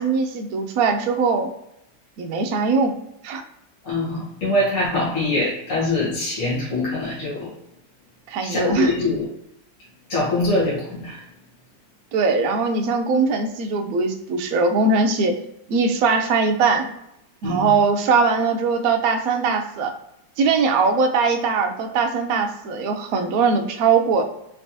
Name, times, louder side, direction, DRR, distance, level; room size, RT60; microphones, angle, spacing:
voice 1, 0.0-1.5 2.2-3.0 3.2-3.4 8.3-8.9 12.1-15.3 15.7-16.9 17.4-19.9 20.4-24.2, right 4 dB, 70° right, 5 dB, 0.9 m, -21 dB
voice 2, 3.8-7.5 8.4-9.3 10.1-11.2 17.4-17.7, left 2 dB, 45° left, -8 dB, 1.9 m, -23 dB
4.4 x 3.3 x 2.7 m, 0.81 s
omnidirectional pair, 2.0 m